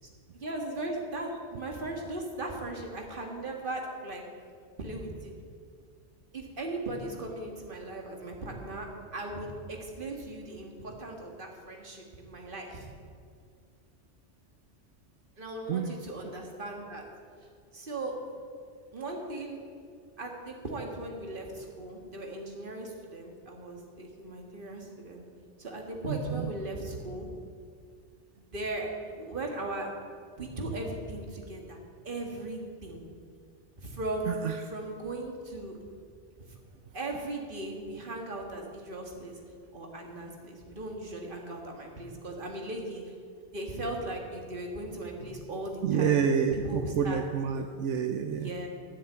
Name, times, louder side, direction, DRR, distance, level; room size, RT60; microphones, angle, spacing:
voice 1, 0.3-4.2 4.8-5.3 6.3-12.9 15.4-17.0 17.7-18.1 18.9-19.6 20.2-25.2 25.6-27.3 28.4-28.9 29.1-29.9 30.4-31.8 32.0-33.0 33.8-34.4 34.7-35.8 36.5-36.6 36.9-39.4 39.7-43.0 43.5-46.3 46.6-47.2 48.3-48.7, right 2 dB, 45° right, 1 dB, 1.8 m, -38 dB
voice 2, 26.0-26.5 34.2-34.6 45.8-48.5, right 7 dB, 75° right, 6 dB, 0.9 m, -29 dB
11.0 x 6.9 x 8.5 m, 2.2 s
omnidirectional pair, 1.3 m